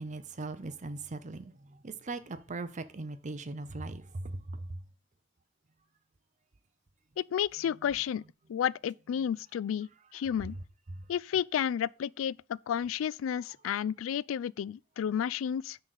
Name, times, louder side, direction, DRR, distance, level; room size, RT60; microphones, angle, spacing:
voice 1, 0.0-4.8, right 2 dB, 40° right, 0.6 m, -39 dB
voice 2, 7.2-8.2 8.5-10.6 11.1-15.8, left 9 dB, 85° left, 0.3 m, -32 dB
9.7 x 4.0 x 6.5 m
head